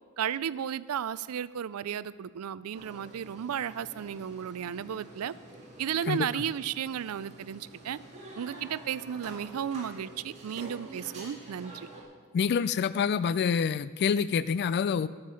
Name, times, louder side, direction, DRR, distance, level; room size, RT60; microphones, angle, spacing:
voice 1, 0.2-5.3 5.8-8.0 8.4-11.9, right 9 dB, 75° right, 18 dB, 0.4 m, -34 dB
sound 1, 2.7-12.0, right 1 dB, 30° right, 2.5 m, -48 dB
voice 2, 6.1-6.4 12.3-15.1, left 6 dB, 50° left, 16 dB, 0.3 m, -27 dB
12.5 x 7.4 x 6.3 m, 1.5 s
head